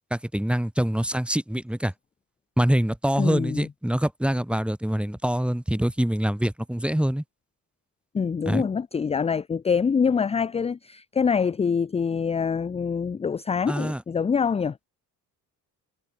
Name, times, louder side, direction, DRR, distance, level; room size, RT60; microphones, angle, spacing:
voice 1, 0.1-1.9 2.6-7.2 8.5-8.6 13.7-14.0, equal, ahead, 0.8 m, -25 dB
voice 2, 3.2-3.7 8.1-14.8, left 6 dB, 15° left, 0.4 m, -25 dB
hypercardioid pair, 45°, 47 cm